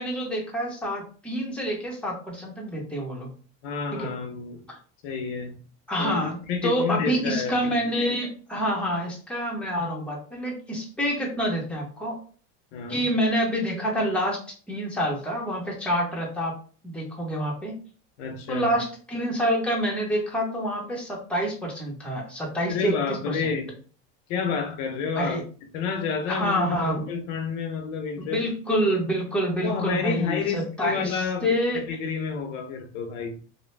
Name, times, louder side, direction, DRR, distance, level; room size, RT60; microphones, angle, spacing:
voice 1, 0.0-3.3 3.9-4.1 4.7-4.8 5.9-12.2 12.9-14.4 14.7-16.5 16.8-17.8 18.5-23.0 23.3-23.5 25.2-25.4 26.3-27.1 28.2-31.9, equal, 5° left, 1.0 m, -27 dB
voice 2, 3.6-4.6 5.0-5.6 6.0-6.1 6.5-7.7 12.7-13.1 18.2-18.7 22.7-23.7 24.3-25.4 25.7-28.4 29.6-31.5 31.7-33.4, left 6 dB, 80° left, 0.8 m, -29 dB
2.6 x 2.2 x 3.3 m
supercardioid pair, 120°, 37 cm